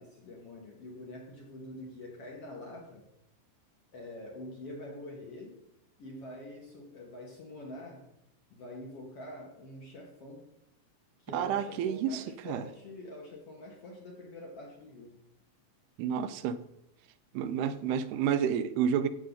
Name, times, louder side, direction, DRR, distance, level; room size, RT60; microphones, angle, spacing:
voice 1, 0.0-3.0 3.9-5.6 6.0-8.1 8.5-10.5 11.2-15.2, left 1 dB, 50° left, 0 dB, 1.9 m, -45 dB
voice 2, 11.3-12.7 16.0-16.6 17.3-19.1, right 8 dB, 85° right, 12 dB, 2.7 m, -30 dB
15.5 x 7.0 x 4.0 m, 0.83 s
omnidirectional pair, 4.5 m